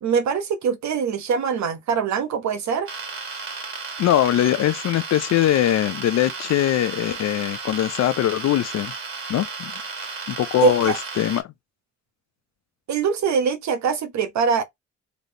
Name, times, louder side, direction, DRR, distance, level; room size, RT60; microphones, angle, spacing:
voice 1, 0.0-2.9 10.6-11.0 12.9-14.6, right 6 dB, 65° right, 1.1 m, -23 dB
sound 1, 2.9-11.4, right 4 dB, 45° right, 2.4 m, -34 dB
voice 2, 4.0-8.9 9.3-9.7 10.3-11.4, left 12 dB, 60° left, 0.5 m, -21 dB
3.9 x 3.4 x 2.8 m
cardioid pair, 90°, 30 cm